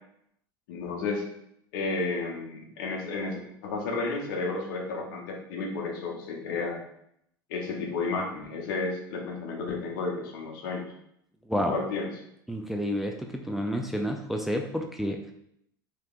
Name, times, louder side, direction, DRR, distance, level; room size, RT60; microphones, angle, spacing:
voice 1, 0.7-1.2 1.7-6.8 7.5-10.8 11.7-12.1, left 3 dB, 70° left, 1 dB, 0.8 m, -32 dB
voice 2, 11.5-11.8 12.5-15.3, equal, ahead, 3 dB, 0.3 m, -30 dB
3.2 x 2.9 x 2.4 m, 0.74 s
hypercardioid pair, 90°, 12 cm